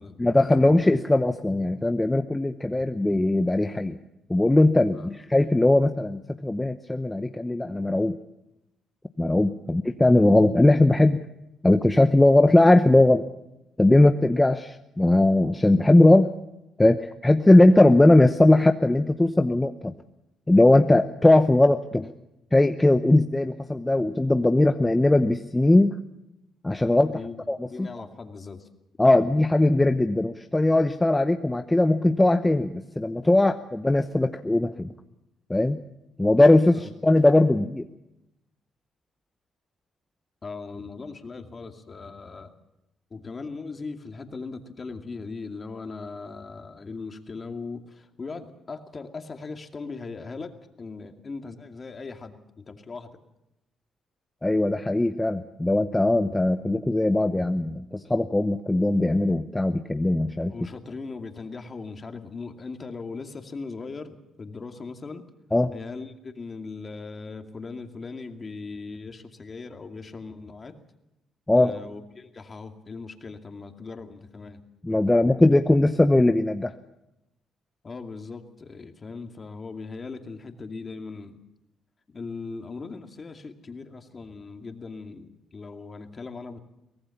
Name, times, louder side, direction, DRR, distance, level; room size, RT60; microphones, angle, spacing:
voice 1, 0.2-4.0 4.3-8.2 9.2-11.2 11.6-13.2 13.8-16.3 16.8-19.9 20.5-22.1 22.5-25.9 26.6-27.1 27.5-27.9 29.0-34.9 35.5-35.8 36.2-37.8 54.4-60.5 65.5-65.7 71.5-71.7 74.8-76.7, left 2 dB, 10° left, 7 dB, 0.9 m, -20 dB
voice 2, 27.0-27.4 27.7-28.7 36.7-36.9 40.4-42.5 43.1-53.1 60.5-65.3 65.7-70.8 71.6-74.6 77.8-81.4 82.1-86.6, left 4 dB, 35° left, 5 dB, 2.4 m, -39 dB
24.0 x 18.0 x 7.2 m, 0.89 s
cardioid pair, 90°, 0 cm